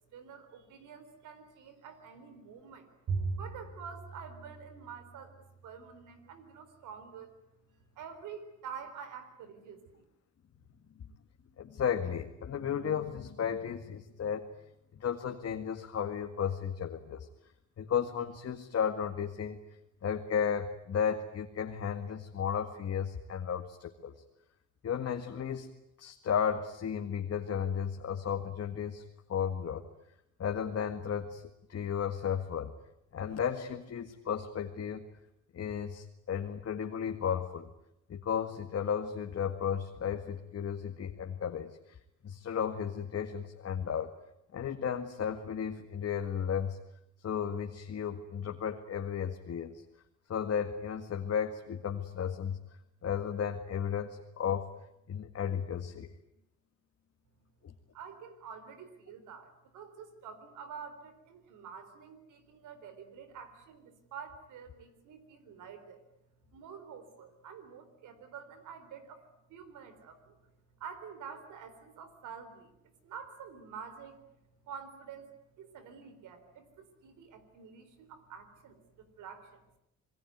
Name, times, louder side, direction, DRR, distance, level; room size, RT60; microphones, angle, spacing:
voice 1, 0.1-2.9 3.4-5.3 5.6-7.3 8.0-10.0 57.9-66.0 66.5-69.2 69.5-70.4 70.8-72.7 73.0-74.2 74.6-79.6, right 6 dB, 85° right, 11 dB, 4.2 m, -48 dB
Bowed string instrument, 3.1-5.6, right 4 dB, 65° right, 5.9 m, -38 dB
voice 2, 11.6-14.5 15.0-17.3 17.8-19.6 20.0-24.1 24.8-25.7 26.0-29.0 29.3-29.9 30.4-32.8 33.1-35.0 35.5-37.7 38.1-42.0 42.2-44.1 44.5-46.8 47.2-49.8 50.3-52.6 53.0-54.7 55.1-56.1 57.6-57.7, left 7 dB, 50° left, 4 dB, 2.0 m, -34 dB
27.0 x 21.0 x 9.5 m, 0.82 s
cardioid pair, 90°, 30 cm